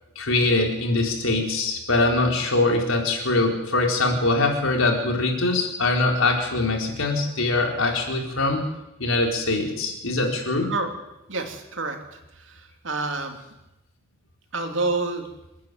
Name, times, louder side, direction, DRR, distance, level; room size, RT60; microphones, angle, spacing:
voice 1, 0.2-8.7 9.0-10.7, left 2 dB, 85° left, 2 dB, 4.4 m, -23 dB
voice 2, 11.3-13.4 14.5-15.3, right 3 dB, 70° right, 4 dB, 3.0 m, -28 dB
27.5 x 10.5 x 9.3 m, 0.94 s
head